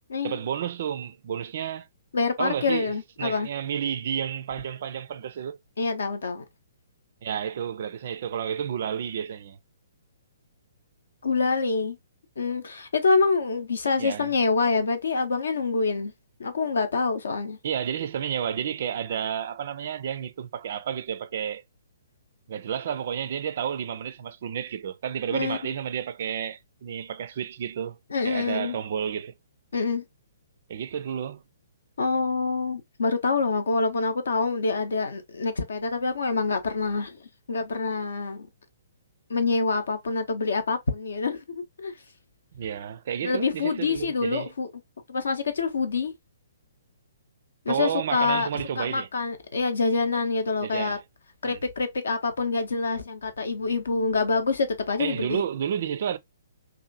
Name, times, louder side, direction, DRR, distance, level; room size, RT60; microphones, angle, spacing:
voice 1, 0.2-1.9 2.4-2.9 3.2-5.6 7.2-9.6 14.0-14.3 17.6-21.6 22.5-28.0 28.2-29.3 30.7-31.4 42.5-44.5 47.7-49.1 50.6-51.0 51.4-51.6 55.0-56.2, right 8 dB, 45° right, 0.3 m, -31 dB
voice 2, 2.1-3.5 5.8-6.4 11.2-12.0 12.4-16.1 16.4-17.6 25.3-25.6 28.1-28.8 29.7-30.0 32.0-38.5 39.3-41.9 43.2-44.7 45.1-46.1 47.7-48.5 48.8-51.0 51.4-55.4, left 4 dB, 60° left, 0.6 m, -26 dB
2.8 x 2.5 x 2.5 m
figure-of-eight pair, 125°, 0 cm